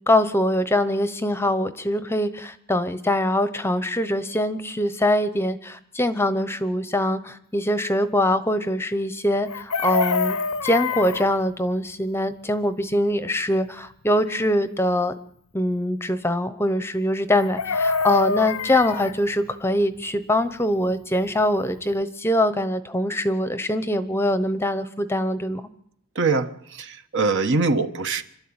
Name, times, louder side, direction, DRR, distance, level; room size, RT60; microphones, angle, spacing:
voice 1, 0.1-10.4 10.6-15.1 15.5-25.7, left 1 dB, 10° left, 11 dB, 0.8 m, -23 dB
Chicken rooster, 9.5-11.3 17.3-19.2 21.4-21.5 21.8-22.0, left 4 dB, 85° left, 0.8 m, -25 dB
voice 2, 26.2-26.5 26.8-28.2, right 3 dB, 55° right, 9 dB, 1.2 m, -22 dB
26.5 x 12.0 x 8.8 m, 0.70 s
head